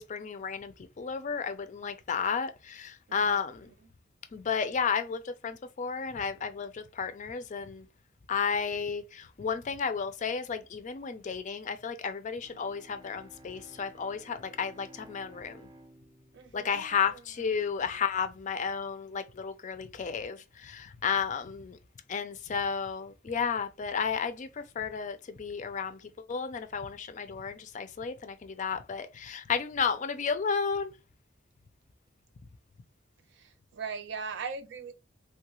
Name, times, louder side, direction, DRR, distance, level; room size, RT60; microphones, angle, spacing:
voice 1, 0.0-3.7 4.3-7.9 8.3-15.7 16.5-21.8 22.1-30.9, left 6 dB, 40° left, 0.4 m, -33 dB
voice 2, 3.1-3.4 16.3-18.0 33.3-34.9, right 5 dB, 65° right, 0.5 m, -41 dB
Bowed string instrument, 12.4-17.7, right 1 dB, 20° right, 0.5 m, -55 dB
3.2 x 2.3 x 2.9 m
head